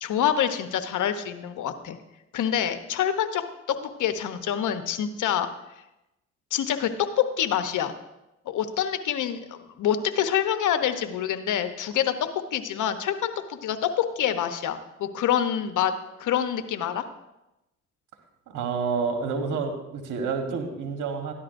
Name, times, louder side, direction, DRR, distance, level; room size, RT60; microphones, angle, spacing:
voice 1, 0.0-2.0 2.3-5.5 6.5-7.9 8.5-12.1 12.5-15.9 16.2-17.0, left 9 dB, 70° left, 9 dB, 0.9 m, -26 dB
voice 2, 18.5-21.3, right 5 dB, 75° right, 4 dB, 1.4 m, -29 dB
13.5 x 10.5 x 2.6 m, 0.93 s
supercardioid pair, 60°, 32 cm